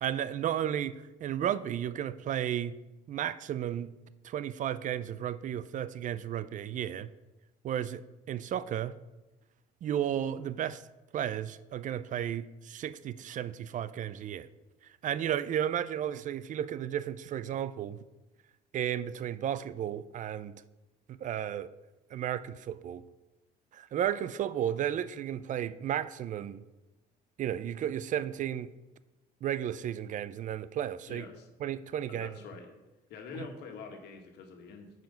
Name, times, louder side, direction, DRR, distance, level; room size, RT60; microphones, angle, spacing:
voice 1, 0.0-2.8 3.1-3.9 4.2-7.1 7.6-8.9 9.8-10.8 11.1-14.5 14.8-18.0 18.7-20.6 21.1-21.7 22.1-23.0 23.7-26.6 27.4-28.7 29.4-31.2 31.6-32.3 33.4-33.5, right 10 dB, 50° right, 16 dB, 0.4 m, -33 dB
voice 2, 31.1-31.5 32.1-32.7 33.1-35.0, left 5 dB, 80° left, 4 dB, 1.6 m, -45 dB
9.2 x 5.0 x 5.1 m, 1.0 s
cardioid pair, 110°, 17 cm